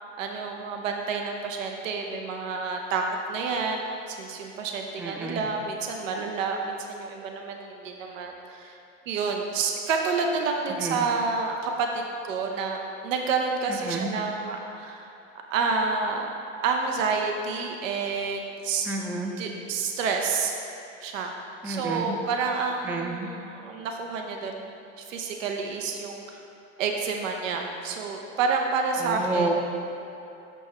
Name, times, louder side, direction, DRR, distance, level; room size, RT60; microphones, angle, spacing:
voice 1, 0.2-8.8 9.1-15.1 15.5-16.3 16.6-18.9 19.4-20.5 21.0-21.3 21.6-26.4 26.8-29.5, right 4 dB, 85° right, 2 dB, 0.6 m, -29 dB
voice 2, 5.0-5.5 10.7-11.1 13.7-14.1 18.9-19.3 21.6-22.2 22.8-23.3 29.0-29.5, right 3 dB, 5° right, 2 dB, 0.4 m, -30 dB
6.2 x 5.4 x 3.2 m, 2.8 s
hypercardioid pair, 70°, 38 cm